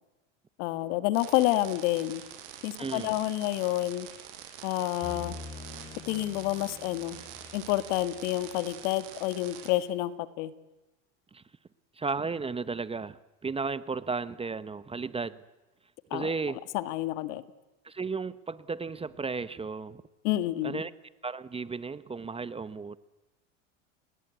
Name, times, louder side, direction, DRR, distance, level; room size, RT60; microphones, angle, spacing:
voice 1, 0.6-2.2 2.6-4.1 4.6-5.4 6.1-7.2 7.5-10.5 16.1-16.3 16.7-17.4 20.2-20.8, left 15 dB, 65° left, 1.9 m, -29 dB
sound 1, 1.1-9.7, right 10 dB, 70° right, 6.8 m, -46 dB
voice 2, 2.8-3.2 11.3-11.4 12.0-15.4 16.1-16.6 17.8-20.0 20.6-20.9 21.2-23.0, right 4 dB, 15° right, 0.9 m, -34 dB
sound 2, 5.0-8.8, left 3 dB, 20° left, 5.4 m, -46 dB
30.0 x 20.5 x 9.4 m
hypercardioid pair, 105°, 38 cm